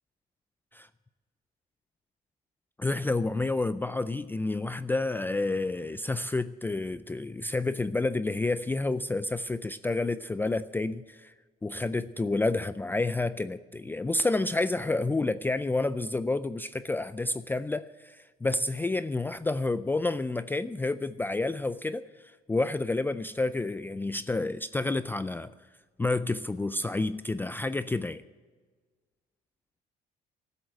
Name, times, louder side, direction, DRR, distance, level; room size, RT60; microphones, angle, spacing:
voice 1, 2.8-11.3 11.6-25.5 26.0-28.2, left 2 dB, 10° left, 12 dB, 0.4 m, -29 dB
14.0 x 8.1 x 9.3 m, 1.4 s
cardioid pair, 110°, 17 cm